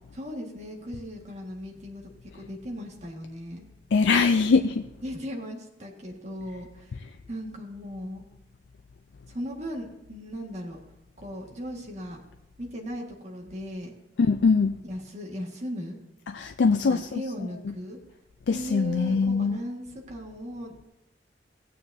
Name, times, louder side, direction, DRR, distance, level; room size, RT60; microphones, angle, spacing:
voice 1, 0.1-3.7 5.0-7.0 7.3-8.2 9.3-10.8 11.2-12.2 12.6-13.9 14.8-16.0 16.8-18.0 18.5-20.8, equal, 40° right, 0 dB, 1.7 m, -37 dB
voice 2, 3.9-4.9 14.2-14.8 16.3-17.2 18.5-19.6, left 4 dB, 75° left, 8 dB, 0.4 m, -22 dB
16.5 x 9.2 x 2.7 m, 0.96 s
head